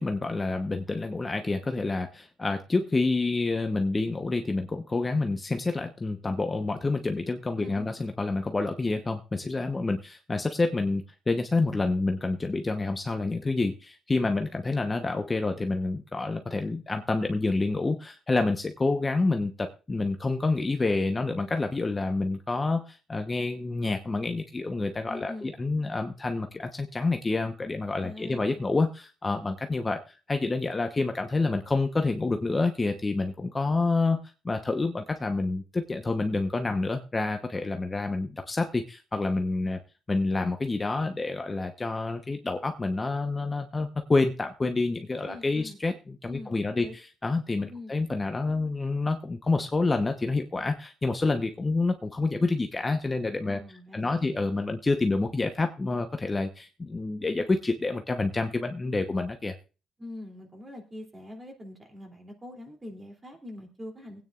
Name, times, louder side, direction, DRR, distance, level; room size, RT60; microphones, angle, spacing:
voice 1, 0.0-30.0 30.3-39.8 40.1-53.6 53.9-59.5, left 3 dB, 25° left, 5 dB, 0.9 m, -28 dB
voice 2, 7.6-7.9 25.1-25.5 28.0-28.8 45.2-45.8 46.2-47.0 47.7-47.9 53.4-54.4 60.0-64.2, left 1 dB, 20° right, 2 dB, 2.8 m, -43 dB
22.5 x 9.3 x 2.4 m, 0.33 s
cardioid pair, 90°, 0 cm